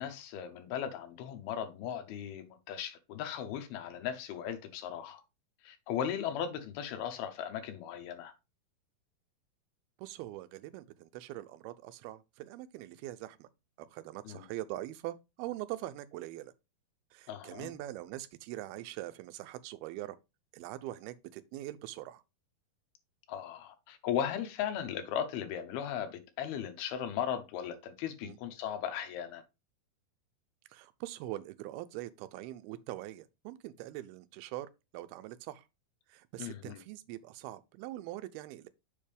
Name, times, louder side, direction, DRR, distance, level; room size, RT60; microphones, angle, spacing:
voice 1, 0.0-5.2 5.7-8.3 14.3-14.4 17.3-17.7 23.3-29.4 36.4-36.8, left 9 dB, 80° left, 2.9 m, -37 dB
voice 2, 10.0-13.5 13.8-16.5 17.1-20.2 20.5-22.2 28.2-28.4 30.7-35.7 36.1-38.7, right 15 dB, 85° right, 2.5 m, -43 dB
7.2 x 5.4 x 3.4 m
omnidirectional pair, 4.5 m